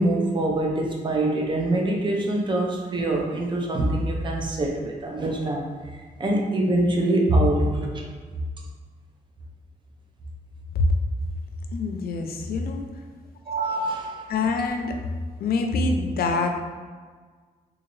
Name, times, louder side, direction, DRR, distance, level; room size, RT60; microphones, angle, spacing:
voice 1, 0.0-5.7 6.2-8.0 13.5-14.3, right 1 dB, 30° right, 0 dB, 0.5 m, -24 dB
voice 2, 11.7-12.9 14.3-14.9 15.4-16.6, left 3 dB, 85° left, 4 dB, 0.4 m, -25 dB
3.8 x 2.4 x 3.1 m, 1.5 s
wide cardioid pair, 155°, 15 cm